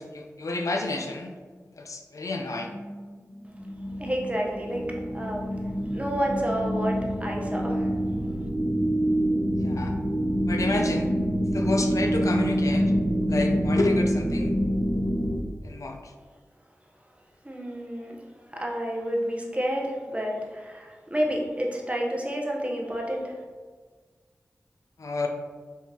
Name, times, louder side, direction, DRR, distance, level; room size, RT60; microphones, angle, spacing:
voice 1, 0.0-1.3 1.7-2.8 9.6-9.9 10.5-11.1 11.5-12.9 13.3-14.6 15.6-16.1 25.0-25.3, left 2 dB, 75° left, 2 dB, 0.5 m, -30 dB
sound 1, 2.6-15.4, equal, 15° left, 1.4 m, -26 dB
voice 2, 4.0-5.5 5.9-7.9 17.4-18.2 18.5-23.4, equal, 25° right, -1 dB, 0.9 m, -30 dB
4.6 x 3.4 x 2.9 m, 1.5 s
cardioid pair, 45°, 6 cm